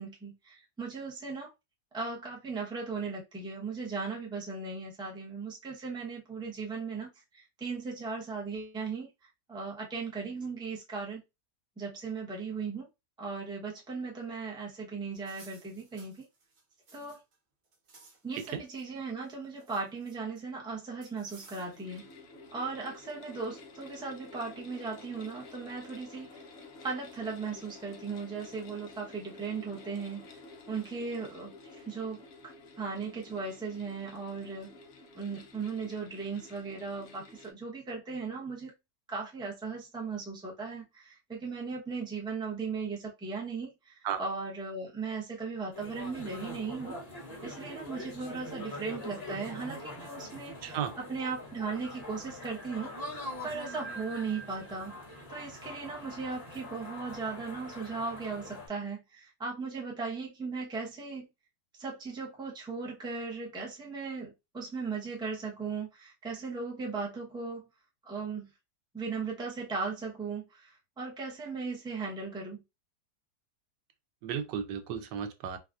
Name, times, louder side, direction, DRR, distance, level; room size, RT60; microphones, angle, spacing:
voice 1, 0.0-1.5 1.9-9.1 9.5-11.2 11.8-12.9 13.2-16.3 16.9-17.2 18.2-22.1 22.5-26.5 26.8-30.3 30.7-32.2 32.8-34.7 35.1-38.7 39.1-47.0 47.4-52.9 53.4-55.0 55.3-61.3 61.8-67.7 68.0-68.5 68.9-72.6, right 4 dB, 5° right, 0.6 m, -37 dB
sound 1, 15.1-17.4 17.6-18.8 19.2-20.4 21.0-22.0, right 3 dB, 65° right, 1.5 m, -57 dB
sound 2, 21.3-37.5, left 3 dB, 60° left, 0.7 m, -51 dB
sound 3, 45.7-58.7, left 1 dB, 30° left, 1.0 m, -43 dB
voice 2, 50.6-50.9 74.2-75.6, right 8 dB, 90° right, 1.3 m, -34 dB
4.0 x 2.3 x 2.4 m
omnidirectional pair, 1.8 m